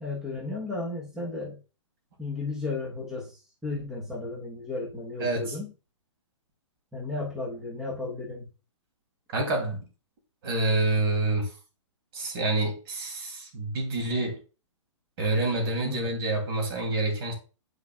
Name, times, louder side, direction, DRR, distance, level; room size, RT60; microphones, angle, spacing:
voice 1, 0.0-1.6 2.2-5.7 6.9-8.5 15.8-16.1, left 3 dB, 5° right, 1.2 m, -34 dB
voice 2, 5.2-5.6 9.3-9.8 10.4-11.5 12.1-14.4 15.2-17.3, right 2 dB, 45° right, 3.0 m, -27 dB
9.1 x 4.8 x 2.4 m
hypercardioid pair, 150°, 17 cm